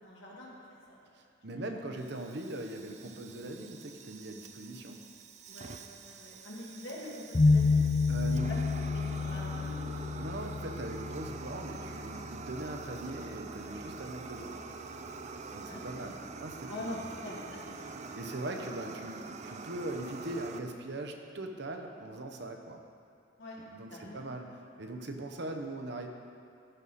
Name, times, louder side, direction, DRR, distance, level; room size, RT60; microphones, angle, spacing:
voice 1, 0.0-0.5 0.9-1.0 1.5-1.6 5.5-5.7 6.0-7.9 8.3-8.6 8.9-10.5 15.5-16.2 16.7-18.0 23.4-23.6 23.9-24.2, left 1 dB, 75° left, -5 dB, 2.2 m, -44 dB
voice 2, 1.1-5.0 8.1-8.6 10.2-14.6 15.5-17.0 18.1-22.8 23.7-26.1, right 2 dB, 65° right, 4 dB, 0.8 m, -40 dB
Fire, 2.0-20.6, right 4 dB, 40° right, 0.4 m, -45 dB
sound 1, 7.3-13.1, left 3 dB, 25° left, 0.3 m, -29 dB
14.5 x 5.5 x 4.2 m, 2.5 s
head